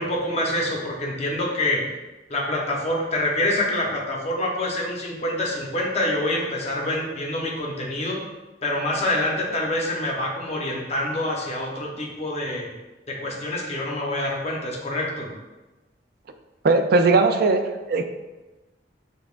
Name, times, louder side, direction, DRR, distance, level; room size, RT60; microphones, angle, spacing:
voice 1, 0.0-1.9 2.3-8.2 8.6-12.7 13.1-15.3, left 1 dB, 35° left, -2 dB, 0.8 m, -26 dB
voice 2, 16.6-18.0, right 3 dB, 55° right, 7 dB, 0.3 m, -19 dB
6.9 x 2.3 x 2.4 m, 1.1 s
head